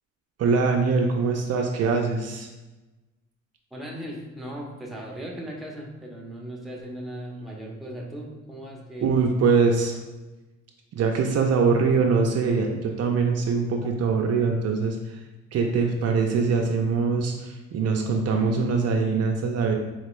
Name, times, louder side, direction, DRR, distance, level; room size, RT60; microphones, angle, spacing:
voice 1, 0.4-2.5 9.0-9.9 10.9-15.0 15.5-19.7, right 4 dB, 55° right, 2 dB, 0.6 m, -23 dB
voice 2, 3.7-9.1, right 1 dB, ahead, -2 dB, 0.9 m, -37 dB
4.3 x 3.1 x 3.1 m, 1.1 s
cardioid pair, 90°, 30 cm